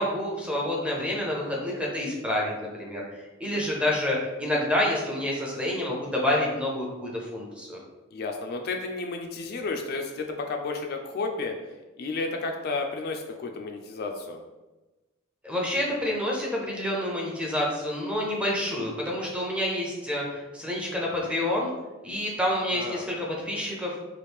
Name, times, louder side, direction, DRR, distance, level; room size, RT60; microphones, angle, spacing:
voice 1, 0.0-3.0 3.4-7.8 15.4-21.7 22.0-23.9, left 1 dB, 5° right, -3 dB, 0.6 m, -28 dB
voice 2, 8.1-11.6 12.0-14.4 22.7-23.0, left 3 dB, 50° left, 3 dB, 0.3 m, -32 dB
3.1 x 2.4 x 3.4 m, 1.1 s
head